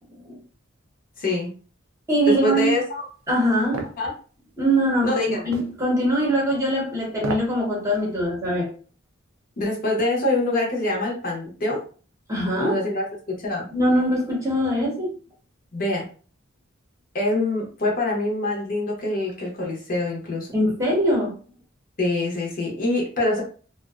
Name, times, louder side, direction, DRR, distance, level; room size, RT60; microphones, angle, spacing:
voice 1, 1.2-1.5 2.2-3.0 4.0-4.1 5.0-5.5 9.6-11.8 12.6-13.6 15.7-16.1 17.1-20.5 22.0-23.4, left 2 dB, 45° left, -1 dB, 0.7 m, -25 dB
voice 2, 2.1-2.8 3.3-3.9 4.6-8.7 12.3-12.7 13.7-15.1 20.5-21.3, equal, 15° right, -3 dB, 0.8 m, -22 dB
sound 1, 3.7-4.0 5.5-5.7 7.1-7.6 8.0-8.1, right 2 dB, 90° right, 0.4 m, -31 dB
2.5 x 2.1 x 2.3 m, 0.40 s
head